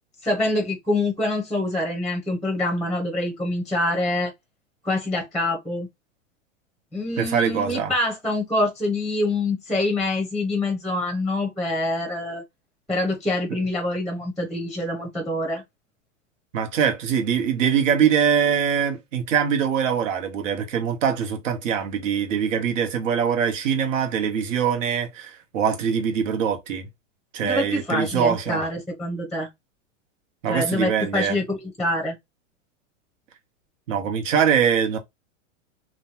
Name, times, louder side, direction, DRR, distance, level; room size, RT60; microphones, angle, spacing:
voice 1, 0.2-4.3 4.8-5.9 6.9-12.4 12.9-15.6 27.4-29.5 30.5-32.1, left 2 dB, ahead, 0.6 m, -25 dB
voice 2, 7.2-7.9 16.5-26.8 27.3-28.6 30.4-31.4 33.9-35.0, right 7 dB, 80° right, 1.1 m, -23 dB
3.0 x 2.2 x 2.8 m
supercardioid pair, 140°, 38 cm